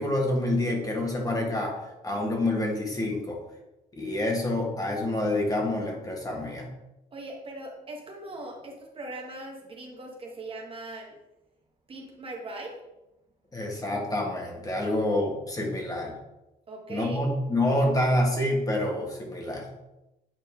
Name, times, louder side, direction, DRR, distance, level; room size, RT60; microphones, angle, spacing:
voice 1, 0.0-1.7 2.0-3.4 3.9-6.7 13.5-16.1 16.9-19.7, left 1 dB, 20° left, 0 dB, 1.7 m, -27 dB
voice 2, 7.1-11.1 11.9-12.8 16.7-17.2, right 2 dB, 30° right, 0 dB, 1.3 m, -40 dB
8.9 x 4.1 x 3.6 m, 0.95 s
cardioid pair, 110°, 17 cm